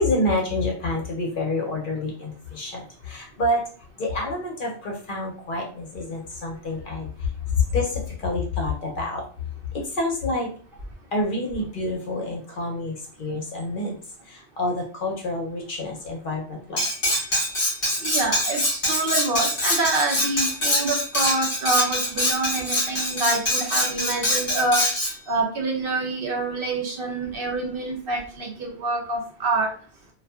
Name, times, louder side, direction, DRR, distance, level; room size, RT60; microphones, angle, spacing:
voice 1, 0.0-3.6 4.0-7.3 7.5-9.2 9.7-10.5 11.1-14.0 14.3-16.8, left 2 dB, 55° left, 0 dB, 0.7 m, -27 dB
Cutlery silverware, 16.8-25.1, left 1 dB, 35° left, 1.0 m, -24 dB
voice 2, 18.0-29.7, right 2 dB, 60° right, 0 dB, 0.7 m, -26 dB
2.5 x 2.3 x 2.2 m, 0.43 s
omnidirectional pair, 1.2 m